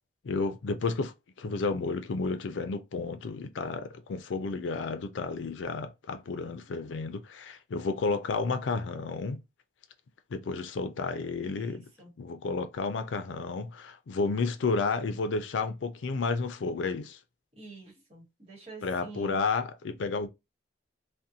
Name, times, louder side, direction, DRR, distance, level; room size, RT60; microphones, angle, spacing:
voice 1, 0.2-9.4 10.3-11.8 12.2-17.2 18.8-20.3, left 4 dB, 90° left, 0.4 m, -31 dB
voice 2, 11.4-12.1 17.5-19.5, right 4 dB, 35° right, 1.1 m, -47 dB
2.5 x 2.1 x 2.7 m
head